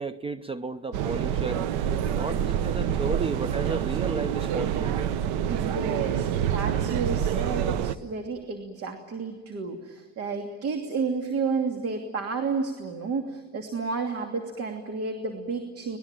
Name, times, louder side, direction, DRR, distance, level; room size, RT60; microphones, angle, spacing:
voice 1, 0.0-1.7 2.1-5.1, right 3 dB, 20° right, 14 dB, 0.7 m, -33 dB
sound 1, 0.9-8.0, right 9 dB, 80° right, 1.1 m, -27 dB
voice 2, 5.5-16.0, right 4 dB, 50° right, 5 dB, 2.8 m, -31 dB
25.5 x 20.5 x 9.0 m, 1.4 s
supercardioid pair, 100°, 30 cm